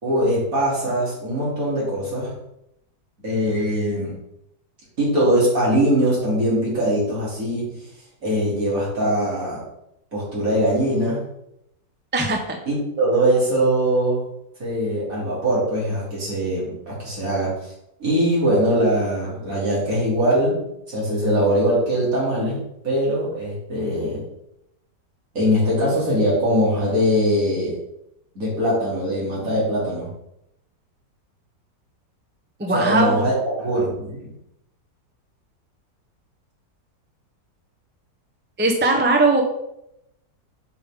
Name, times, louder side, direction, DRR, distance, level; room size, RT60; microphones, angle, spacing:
voice 1, 0.0-2.3 3.2-4.1 5.0-7.8 8.2-9.6 10.1-11.2 12.7-14.2 14.6-17.7 18.0-20.6 20.9-22.6 22.8-24.2 25.3-27.8 28.4-30.1 32.7-34.3, equal, 50° right, -6 dB, 3.6 m, -21 dB
voice 2, 12.1-12.6 32.6-33.3 38.6-39.4, right 2 dB, 10° right, 2 dB, 0.5 m, -19 dB
8.3 x 5.1 x 3.7 m, 0.81 s
omnidirectional pair, 1.9 m